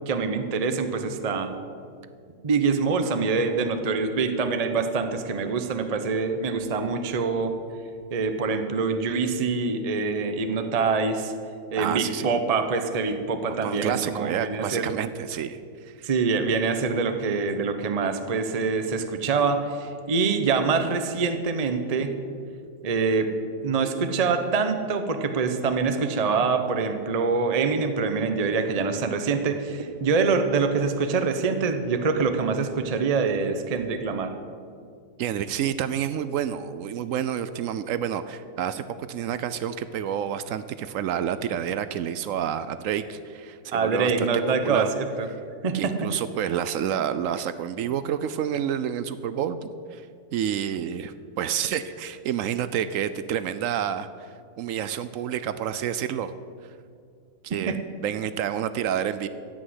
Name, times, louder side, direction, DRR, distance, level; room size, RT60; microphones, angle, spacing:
voice 1, 0.1-1.5 2.4-7.6 8.1-11.3 11.7-14.9 16.0-22.1 22.8-23.3 23.6-34.3 43.7-45.3 45.6-46.1 57.7-57.8, right 4 dB, 35° right, 7 dB, 0.6 m, -25 dB
voice 2, 11.7-12.3 13.6-16.1 35.2-44.9 45.7-50.1 50.3-56.3 57.4-59.3, right 9 dB, 80° right, 13 dB, 0.7 m, -29 dB
15.0 x 6.3 x 9.6 m, 2.3 s
omnidirectional pair, 2.0 m